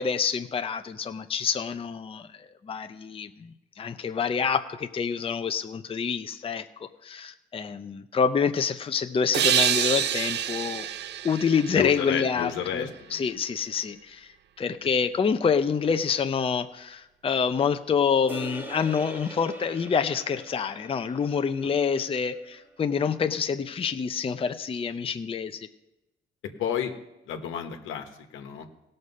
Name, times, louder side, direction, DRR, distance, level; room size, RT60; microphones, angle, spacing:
voice 1, 0.0-2.3 2.6-10.9 11.2-14.3 14.6-25.7, left 6 dB, 30° left, 8 dB, 0.6 m, -27 dB
sound 1, 9.3-12.8, right 10 dB, 60° right, 0.5 m, -27 dB
voice 2, 11.7-13.2 26.6-26.9 27.3-28.7, left 9 dB, 85° left, 6 dB, 1.3 m, -31 dB
sound 2, 18.3-22.8, right 1 dB, 10° right, 1.3 m, -43 dB
17.0 x 6.6 x 5.5 m, 0.98 s
cardioid pair, 90°, 20 cm